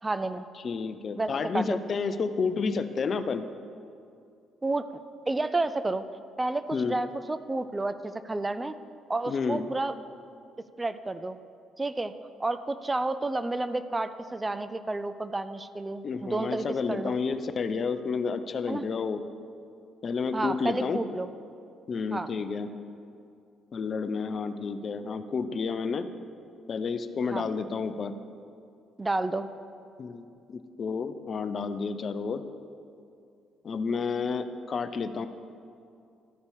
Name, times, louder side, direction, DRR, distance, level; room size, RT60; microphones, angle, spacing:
voice 1, 0.0-0.5 1.2-1.6 4.6-6.0 6.4-8.7 9.1-9.9 10.8-11.4 11.8-12.1 12.4-17.1 18.7-18.8 20.3-21.3 22.1-22.3 27.3-27.4 29.0-29.5, right 2 dB, 20° right, 12 dB, 0.4 m, -30 dB
voice 2, 0.6-3.4 6.7-7.0 9.3-9.6 16.0-19.2 20.0-21.0 21.9-22.7 23.7-26.1 26.7-28.1 30.0-32.4 33.6-35.3, left 5 dB, 50° left, 11 dB, 0.5 m, -30 dB
12.5 x 5.1 x 4.9 m, 2.5 s
hypercardioid pair, 50°, 0 cm